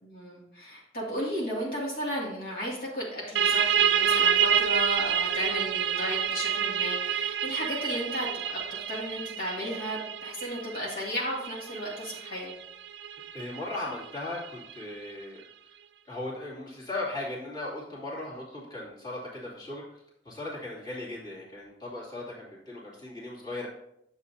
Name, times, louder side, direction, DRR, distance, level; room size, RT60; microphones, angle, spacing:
voice 1, 0.0-8.6 8.9-12.5, equal, 55° left, -5 dB, 2.4 m, -34 dB
sound 1, 3.4-14.7, right 8 dB, 75° right, 0.4 m, -28 dB
voice 2, 13.3-15.4 16.1-19.8 20.2-23.7, left 2 dB, 25° left, -7 dB, 2.6 m, -37 dB
9.7 x 7.3 x 2.8 m, 0.78 s
head